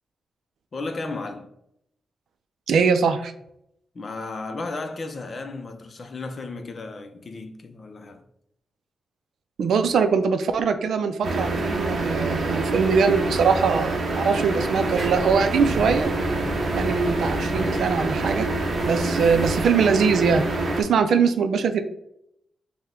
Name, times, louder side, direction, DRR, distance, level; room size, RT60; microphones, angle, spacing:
voice 1, 0.7-1.5 3.9-8.2, left 3 dB, 40° left, 0.5 m, -34 dB
voice 2, 2.7-3.3 9.6-16.1 16.7-18.5 18.8-20.4 20.8-21.8, right 5 dB, 80° right, 0.4 m, -22 dB
sound 1, 11.2-20.8, right 2 dB, 50° right, 0.7 m, -26 dB
sound 2, 14.7-19.7, equal, 30° right, 1.3 m, -35 dB
5.5 x 2.2 x 3.6 m
wide cardioid pair, 130°, 0 cm